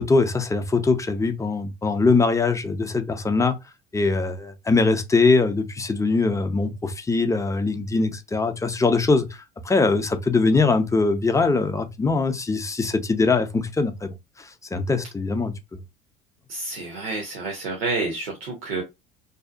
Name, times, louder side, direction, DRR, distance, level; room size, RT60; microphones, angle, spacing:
voice 1, 0.0-3.6 3.9-9.3 9.6-15.8, left 3 dB, 10° left, 0.5 m, -22 dB
voice 2, 16.5-18.8, right 3 dB, 80° right, 0.7 m, -29 dB
2.7 x 2.1 x 2.4 m
hypercardioid pair, 65°, 29 cm